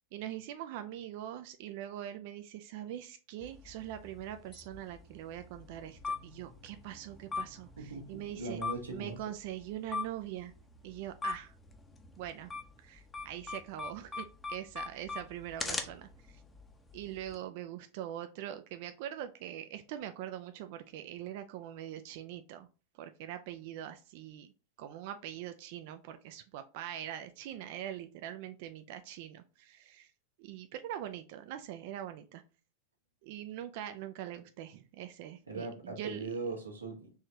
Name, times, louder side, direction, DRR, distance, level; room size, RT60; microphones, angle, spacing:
voice 1, 0.1-8.6 8.9-10.5 10.8-11.6 12.2-12.5 12.8-16.4 16.9-22.7 23.0-24.5 24.8-30.1 30.4-32.4 33.2-36.3, right 11 dB, 50° right, 0.3 m, -43 dB
sound 1, 3.4-17.3, left 4 dB, 15° left, 0.6 m, -43 dB
voice 2, 7.8-9.2 35.5-37.1, right 3 dB, 75° right, 1.1 m, -40 dB
4.7 x 3.2 x 2.7 m
figure-of-eight pair, 90°, 0 cm